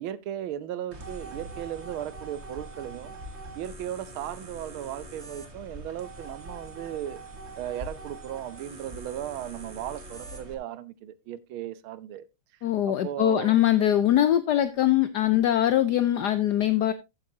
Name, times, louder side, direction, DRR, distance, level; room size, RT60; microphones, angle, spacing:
voice 1, 0.0-3.2 3.5-7.2 7.6-12.3 12.6-13.6, right 11 dB, 85° right, 1.6 m, -36 dB
sound 1, 0.9-10.5, right 2 dB, 35° right, 1.9 m, -43 dB
voice 2, 12.6-16.9, left 12 dB, 65° left, 1.1 m, -22 dB
13.5 x 8.8 x 2.7 m
omnidirectional pair, 2.2 m